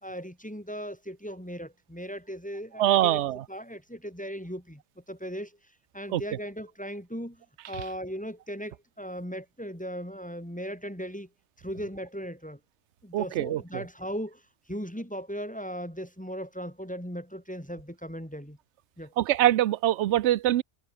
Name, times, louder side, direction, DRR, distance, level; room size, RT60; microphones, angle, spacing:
voice 1, 0.0-3.2 3.5-5.6 5.9-11.3 11.6-12.6 13.0-14.4 14.7-18.6 19.0-19.1, equal, 5° left, 2.9 m, -38 dB
voice 2, 2.8-3.4 6.1-6.2 13.1-13.8 19.2-20.6, right 13 dB, 65° right, 0.7 m, -24 dB
omnidirectional pair, 1.5 m